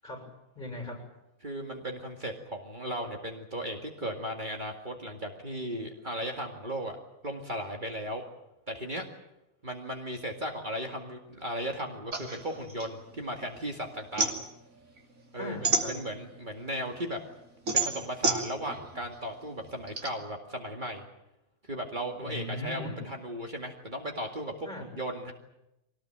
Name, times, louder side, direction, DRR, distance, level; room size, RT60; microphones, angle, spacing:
voice 1, 0.0-1.1 15.4-16.0 22.2-23.0 24.6-24.9, left 1 dB, 35° left, 3 dB, 7.1 m, -39 dB
voice 2, 1.4-8.2 8.7-9.1 9.6-14.3 15.3-15.6 15.9-17.2 17.7-21.1 21.6-24.7 25.0-25.3, equal, 35° right, 2 dB, 2.3 m, -36 dB
sound 1, 12.1-13.6 13.9-16.5 16.9-20.1, right 3 dB, 80° right, 3.1 m, -30 dB
23.5 x 19.0 x 9.0 m, 0.90 s
omnidirectional pair, 1.4 m